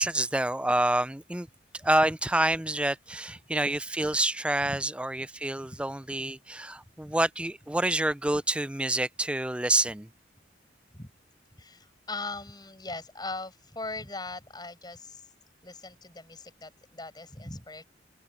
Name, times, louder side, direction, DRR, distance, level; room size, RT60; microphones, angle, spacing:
voice 1, 0.0-1.5 1.8-10.1, right 1 dB, 5° right, 0.4 m, -27 dB
voice 2, 11.6-15.3 15.6-17.8, left 3 dB, 25° left, 7.0 m, -40 dB
open air
head